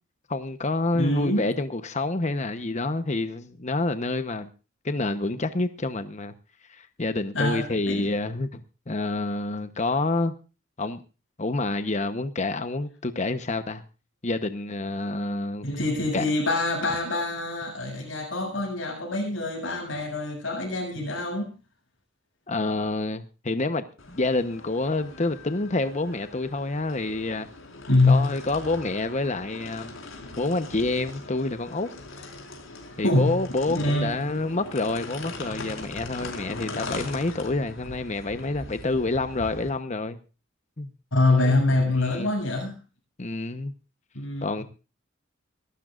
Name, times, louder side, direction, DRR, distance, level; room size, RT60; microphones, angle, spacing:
voice 1, 0.3-4.5 4.8-6.3 6.7-8.6 8.9-10.3 10.8-11.0 11.4-13.8 14.2-15.6 16.1-16.2 22.5-27.5 28.1-29.9 30.4-31.9 33.0-40.2 40.8-40.9 41.3-41.6 42.0-42.3 43.2-43.7 44.4-44.6, left 2 dB, 35° left, 1.0 m, -28 dB
voice 2, 0.9-1.5 7.3-8.1 15.6-21.6 27.9-28.3 33.0-33.4 33.7-34.2 41.1-42.8 44.1-44.7, left 2 dB, 75° left, 7.7 m, -25 dB
sound 1, 24.0-39.7, left 2 dB, 90° left, 4.5 m, -41 dB
24.0 x 12.5 x 2.5 m
head